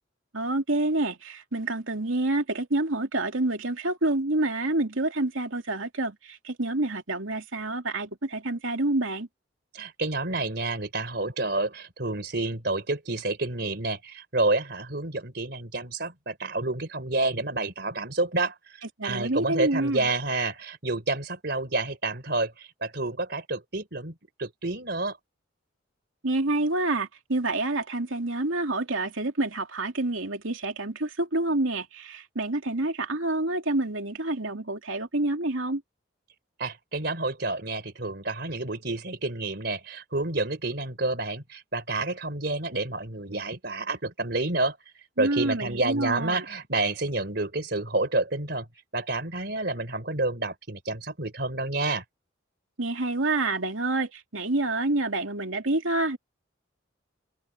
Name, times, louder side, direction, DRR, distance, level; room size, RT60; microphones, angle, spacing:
voice 1, 0.3-9.3 19.0-20.1 26.2-35.8 45.2-46.4 52.8-56.2, right 2 dB, 85° right, 2.9 m, -28 dB
voice 2, 9.7-25.2 36.6-44.8 45.2-48.7 48.9-52.0, right 2 dB, 55° right, 3.8 m, -29 dB
head